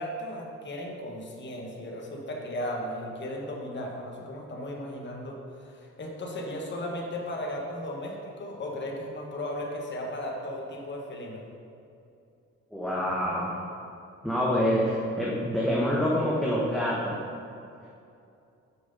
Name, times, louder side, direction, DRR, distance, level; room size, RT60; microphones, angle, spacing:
voice 1, 0.0-11.4, left 1 dB, 35° left, -1 dB, 1.4 m, -36 dB
voice 2, 12.7-13.7 14.2-17.2, equal, ahead, -5 dB, 1.0 m, -26 dB
6.2 x 6.1 x 5.3 m, 2.6 s
cardioid pair, 90°, 30 cm